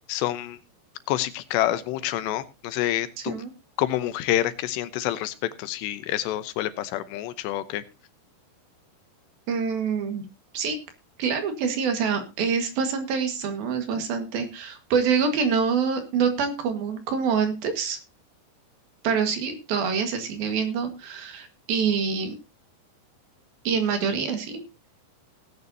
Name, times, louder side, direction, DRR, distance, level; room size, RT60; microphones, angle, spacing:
voice 1, 0.1-0.6 1.1-3.3 3.8-7.8, left 13 dB, 80° left, 13 dB, 3.0 m, -27 dB
voice 2, 3.2-3.5 9.5-10.3 10.5-10.8 11.2-18.0 19.0-22.4 23.6-24.6, right 6 dB, 65° right, 7 dB, 3.4 m, -26 dB
18.0 x 9.5 x 2.8 m, 0.27 s
omnidirectional pair, 4.9 m